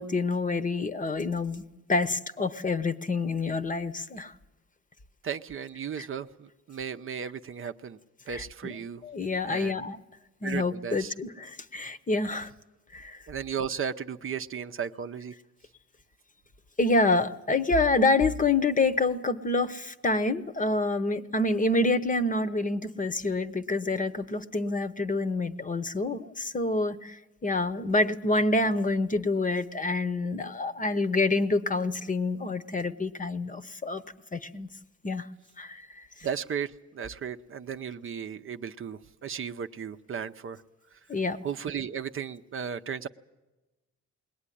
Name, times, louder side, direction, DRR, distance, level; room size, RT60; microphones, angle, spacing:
voice 1, 0.0-1.6 1.9-4.3 6.0-6.1 8.3-8.7 9.0-10.0 10.4-12.5 12.9-13.2 16.8-27.2 27.4-34.0 34.3-34.7 35.0-35.3 35.6-35.8 41.1-41.4, left 2 dB, 25° left, 12 dB, 0.9 m, -27 dB
voice 2, 5.2-8.0 8.3-9.0 9.4-9.8 10.4-11.1 13.3-15.3 36.2-40.6 41.4-43.1, right 7 dB, 45° right, 8 dB, 0.7 m, -35 dB
21.0 x 17.5 x 10.0 m, 1.1 s
cardioid pair, 90°, 30 cm